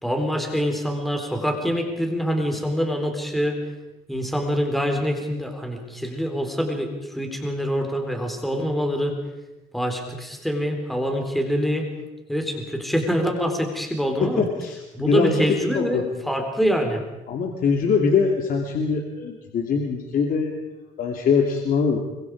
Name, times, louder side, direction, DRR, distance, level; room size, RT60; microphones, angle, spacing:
voice 1, 0.0-3.6 4.1-9.2 9.7-11.9 12.3-14.5 14.9-17.0, equal, ahead, 3 dB, 4.0 m, -25 dB
voice 2, 14.2-15.4 15.7-16.0 17.3-20.5 21.0-22.0, left 5 dB, 55° left, 2 dB, 2.8 m, -22 dB
26.0 x 24.0 x 4.9 m, 1.0 s
cardioid pair, 110°, 17 cm